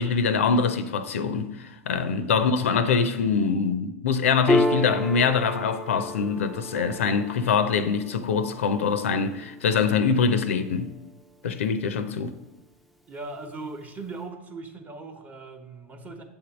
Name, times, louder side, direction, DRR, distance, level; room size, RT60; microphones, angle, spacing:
voice 1, 0.0-10.9 11.4-12.3, left 5 dB, 65° left, 0.5 m, -24 dB
voice 2, 2.0-2.5 13.1-16.2, right 3 dB, 20° right, 0.9 m, -39 dB
Piano, 4.5-11.4, left 1 dB, ahead, 0.5 m, -31 dB
7.4 x 3.6 x 5.9 m
figure-of-eight pair, 90°, 8 cm